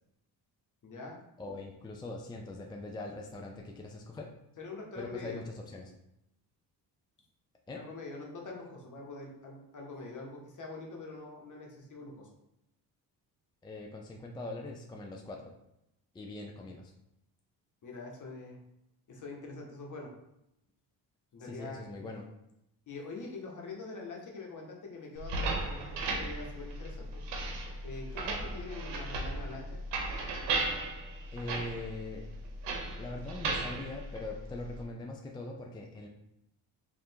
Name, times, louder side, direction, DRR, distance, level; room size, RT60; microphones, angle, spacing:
voice 1, 0.8-1.2 4.6-5.4 7.7-12.3 17.8-18.6 19.1-20.1 21.3-22.1 22.9-27.1 27.8-29.8, left 3 dB, 50° left, 0 dB, 1.2 m, -44 dB
voice 2, 1.4-4.3 5.0-5.9 7.7-7.8 13.6-15.5 16.1-16.9 21.4-22.3 31.3-32.3 32.9-36.1, left 2 dB, 10° left, 1 dB, 0.4 m, -42 dB
sound 1, 25.2-34.8, right 2 dB, 85° right, 0.8 m, -36 dB
3.3 x 2.6 x 4.4 m, 0.83 s
cardioid pair, 85°, 40 cm